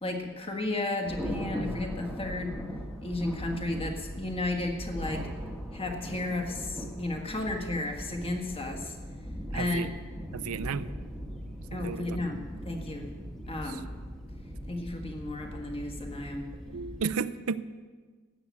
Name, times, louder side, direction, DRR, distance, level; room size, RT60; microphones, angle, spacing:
voice 1, 0.0-2.6 3.0-5.2 5.7-9.0 9.5-9.9 11.7-13.1 13.5-13.9 14.7-16.4, left 2 dB, 25° left, 2 dB, 1.6 m, -33 dB
Thunder, 1.0-17.1, equal, ahead, 1.2 m, -39 dB
voice 2, 9.5-9.9 10.3-10.9 11.7-12.4 13.5-13.8 16.6-17.6, right 5 dB, 75° right, 16 dB, 0.5 m, -34 dB
13.0 x 8.2 x 8.3 m, 1.5 s
head